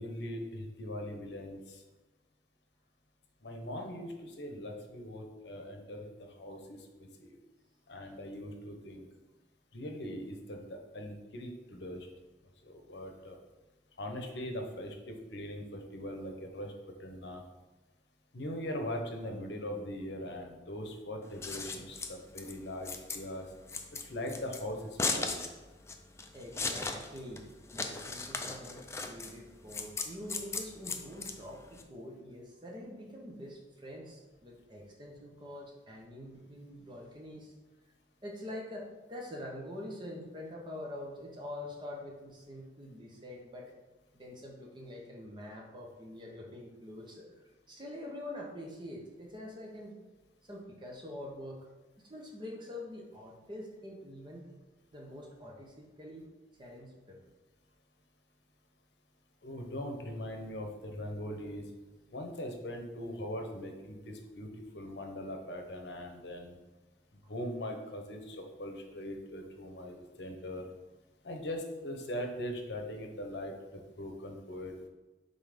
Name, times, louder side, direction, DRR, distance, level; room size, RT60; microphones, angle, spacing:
voice 1, 0.0-1.8 3.4-6.1 6.4-7.3 7.9-9.1 9.7-12.1 12.6-13.4 14.0-16.7 17.0-17.4 18.3-23.5 24.0-25.5 59.4-61.6 62.1-66.6 67.3-70.7 71.2-74.7, left 1 dB, 70° left, 3 dB, 0.9 m, -41 dB
Scissors, 21.2-31.8, left 4 dB, 15° left, 0.4 m, -37 dB
voice 2, 26.3-27.4 27.7-37.5 38.2-43.7 44.1-49.9 50.4-51.6 52.0-54.4 54.9-56.2 56.6-57.2 67.2-67.3, left 1 dB, 25° right, -2 dB, 1.0 m, -45 dB
5.6 x 3.9 x 5.1 m, 1.2 s
head